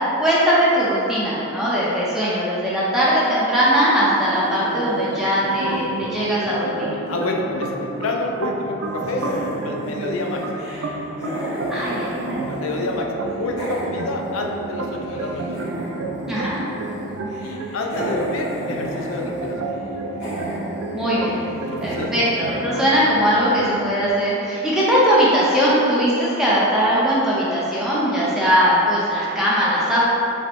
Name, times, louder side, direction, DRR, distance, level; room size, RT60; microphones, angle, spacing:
voice 1, 0.2-6.9 11.7-12.4 16.3-16.6 20.9-21.4 21.8-30.0, equal, 5° right, -9 dB, 0.6 m, -20 dB
sound 1, 4.1-7.2 7.5-8.7 9.0-13.0 13.3-23.3, equal, 55° left, 0.9 m, -34 dB
sound 2, 5.4-24.1, right 2 dB, 75° right, 0.3 m, -30 dB
voice 2, 7.1-9.3 9.6-10.4 12.5-15.4 17.4-19.6 21.7-22.1, left 2 dB, 75° left, 1 dB, 0.4 m, -28 dB
5.0 x 2.1 x 3.5 m, 3.0 s
head